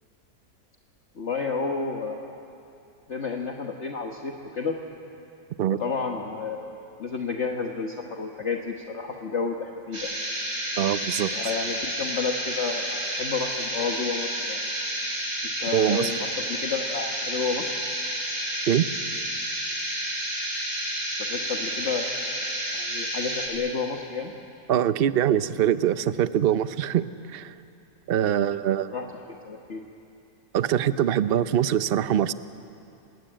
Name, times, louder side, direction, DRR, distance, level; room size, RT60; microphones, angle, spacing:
voice 1, 1.1-2.2 3.1-4.8 5.7-6.7 7.0-10.1 11.3-14.6 15.6-17.7 21.1-22.1 22.7-24.3 28.9-29.2 29.4-29.9, left 5 dB, 50° left, 2 dB, 1.6 m, -31 dB
sound 1, 9.9-23.5, right 1 dB, 85° right, 6.2 m, -30 dB
voice 2, 10.8-11.3 15.7-16.1 18.7-18.9 24.7-27.5 28.1-28.9 30.5-32.3, right 10 dB, 50° right, 13 dB, 0.7 m, -23 dB
29.0 x 20.0 x 8.9 m, 2.7 s
omnidirectional pair, 1.6 m